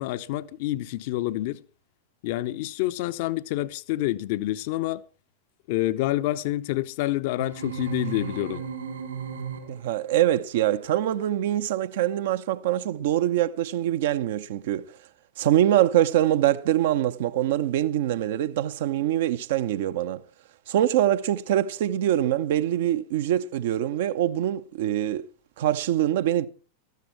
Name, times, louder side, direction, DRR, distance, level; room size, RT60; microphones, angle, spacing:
voice 1, 0.0-1.6 2.2-5.0 5.7-8.7, left 16 dB, 50° left, 0.6 m, -28 dB
sound 1, 7.4-10.0, right 7 dB, 75° right, 5.4 m, -35 dB
voice 2, 9.7-14.9 15.4-20.2 20.7-25.2 25.6-26.5, right 12 dB, 55° right, 0.7 m, -24 dB
15.0 x 13.0 x 4.5 m
figure-of-eight pair, 90°, 0 cm